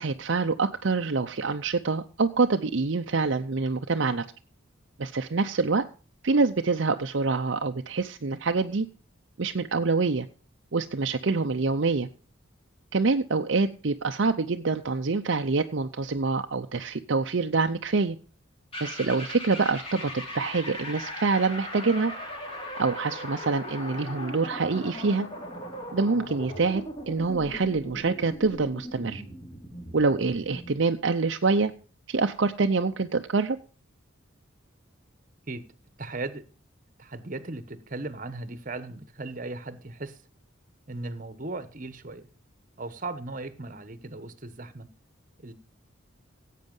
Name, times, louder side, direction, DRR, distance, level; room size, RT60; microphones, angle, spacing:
voice 1, 0.0-4.2 5.0-5.8 6.2-8.9 9.4-10.3 10.7-12.1 12.9-18.2 18.8-22.1 22.8-25.3 25.9-29.2 29.9-31.7 32.1-33.6, right 4 dB, 60° right, 0.6 m, -26 dB
sound 1, 18.7-30.8, equal, 30° left, 4.0 m, -39 dB
voice 2, 36.0-36.5 37.0-40.2 40.9-42.3 42.8-44.9 45.4-45.5, right 2 dB, 40° right, 1.1 m, -37 dB
16.0 x 8.4 x 5.4 m
head